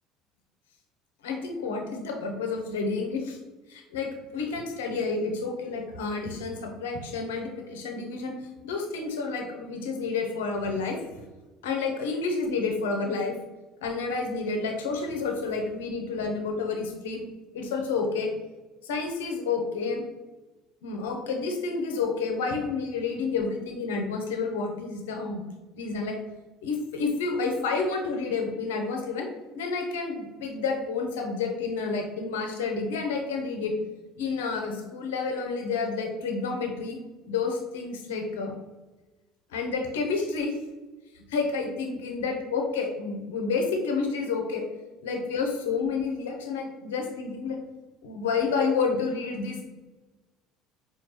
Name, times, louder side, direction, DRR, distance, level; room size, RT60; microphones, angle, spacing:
voice 1, 1.2-3.4 3.7-8.3 8.6-11.0 11.6-13.3 13.8-17.2 17.5-18.3 18.8-20.0 20.8-25.4 25.7-26.2 26.6-29.3 29.5-33.7 34.2-37.0 37.3-38.5 39.5-40.5 41.1-44.6 45.0-47.6 48.0-49.7, left 4 dB, 75° left, 3 dB, 0.6 m, -29 dB
4.4 x 2.3 x 2.9 m, 1.2 s
hypercardioid pair, 65°, 0 cm